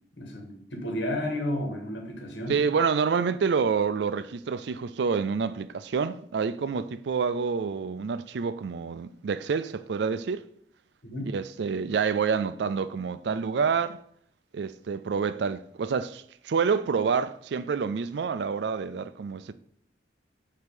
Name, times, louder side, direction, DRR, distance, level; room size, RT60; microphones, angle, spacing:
voice 1, 0.2-2.6 11.0-11.3, left 1 dB, 80° left, 1.7 m, -32 dB
voice 2, 2.5-10.5 11.3-14.0 14.5-19.5, right 5 dB, 75° right, 0.4 m, -28 dB
7.9 x 2.8 x 5.2 m
head